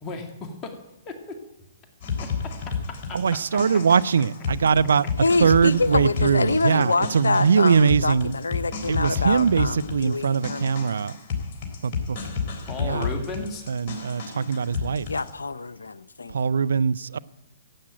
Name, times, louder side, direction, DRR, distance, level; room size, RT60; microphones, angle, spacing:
voice 1, 0.0-0.8 1.1-1.4 2.2-3.6 6.5-6.6 12.6-13.6, left 3 dB, 25° left, 2.2 m, -36 dB
sound 1, 2.0-15.3, left 5 dB, 40° left, 3.8 m, -32 dB
voice 2, 3.1-5.1 5.4-8.3 8.9-11.2 11.8-12.3 12.8-13.1 13.7-15.1 16.3-17.2, right 6 dB, 75° right, 0.5 m, -21 dB
voice 3, 5.2-10.9 12.9-13.1 14.3-14.7 15.1-16.3, left 3 dB, 85° left, 0.7 m, -26 dB
15.5 x 8.6 x 9.0 m
hypercardioid pair, 125°, 0 cm